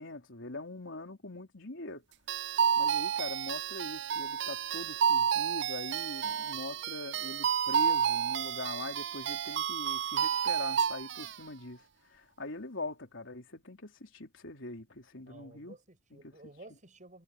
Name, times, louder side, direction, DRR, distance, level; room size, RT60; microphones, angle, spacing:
voice 1, 0.0-2.0 2.8-15.8 16.1-16.5, left 2 dB, 85° left, 3.5 m, -42 dB
sound 1, 2.3-11.4, right 8 dB, 65° right, 0.4 m, -30 dB
voice 2, 15.2-17.2, right 2 dB, 40° right, 7.5 m, -53 dB
head